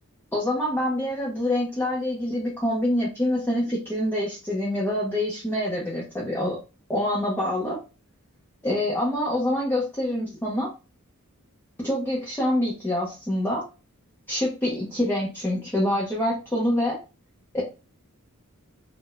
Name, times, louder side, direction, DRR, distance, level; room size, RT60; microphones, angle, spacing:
voice 1, 0.3-6.6 6.9-7.8 8.6-10.7 11.8-13.6 14.3-17.0 17.5-17.6, left 1 dB, 10° left, -5 dB, 0.7 m, -26 dB
2.6 x 2.1 x 3.8 m, 0.30 s
head